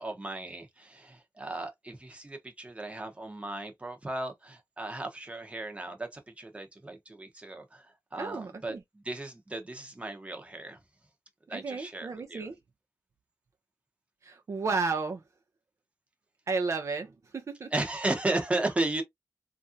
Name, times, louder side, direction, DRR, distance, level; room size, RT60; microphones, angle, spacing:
voice 1, 0.0-10.8 11.5-12.5 17.7-19.0, right 2 dB, 20° right, 0.8 m, -35 dB
voice 2, 8.2-8.8 11.5-12.6 14.2-15.2 16.5-17.7, right 4 dB, 55° right, 0.5 m, -33 dB
3.3 x 2.4 x 2.6 m
wide cardioid pair, 110°, 6 cm